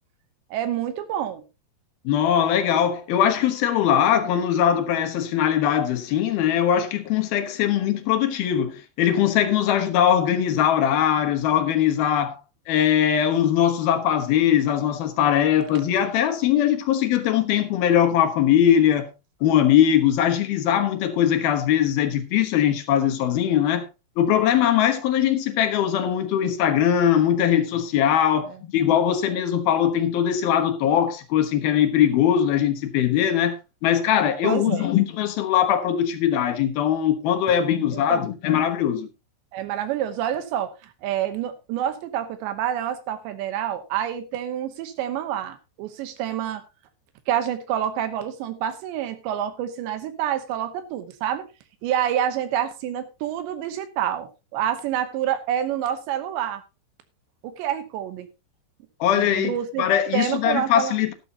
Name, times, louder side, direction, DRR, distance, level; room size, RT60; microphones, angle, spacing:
voice 1, 0.5-1.4 34.4-34.9 37.9-38.2 39.5-46.6 47.3-51.4 51.8-56.6 57.4-58.3 59.2-59.9 60.1-61.0, right 10 dB, 80° right, 3.3 m, -27 dB
voice 2, 2.0-12.4 12.7-19.1 19.4-23.8 24.2-33.6 33.8-39.1 59.0-61.1, left 10 dB, 65° left, 2.9 m, -21 dB
13.0 x 12.5 x 2.9 m
omnidirectional pair, 5.1 m